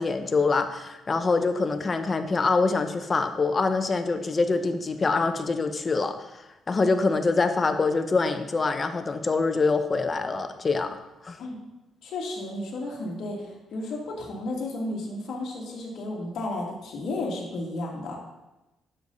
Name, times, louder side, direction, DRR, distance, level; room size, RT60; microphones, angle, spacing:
voice 1, 0.0-6.4 6.7-11.0 11.2-11.4, left 4 dB, 35° left, 8 dB, 0.9 m, -25 dB
voice 2, 12.0-18.2, left 2 dB, 65° left, -1 dB, 2.4 m, -33 dB
10.0 x 7.0 x 4.1 m, 0.99 s
cardioid pair, 90°, 0 cm